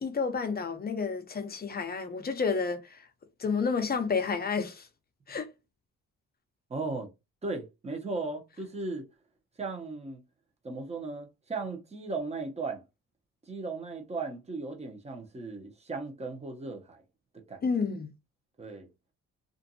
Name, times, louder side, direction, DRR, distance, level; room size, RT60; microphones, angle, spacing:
voice 1, 0.0-3.1 3.4-4.9 5.3-5.5 17.6-18.1, left 5 dB, 30° left, 0.7 m, -30 dB
voice 2, 6.7-7.1 7.4-9.1 9.6-10.2 10.6-12.8 13.5-17.0 17.3-17.7 18.6-18.9, right 3 dB, 20° right, 0.8 m, -36 dB
2.6 x 2.5 x 2.7 m
cardioid pair, 90°, 30 cm